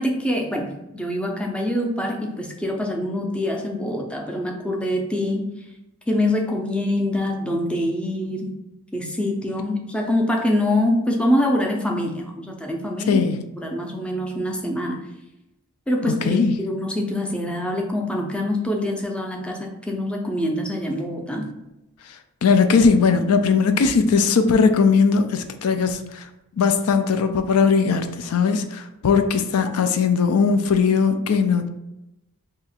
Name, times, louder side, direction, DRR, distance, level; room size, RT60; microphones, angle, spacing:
voice 1, 0.0-5.5 6.1-8.5 8.9-13.2 13.6-15.0 15.9-21.5, left 1 dB, 5° left, 1 dB, 0.5 m, -25 dB
voice 2, 13.1-13.4 16.1-16.6 22.0-31.7, left 5 dB, 75° left, 8 dB, 0.4 m, -19 dB
2.7 x 2.5 x 4.1 m, 0.90 s
head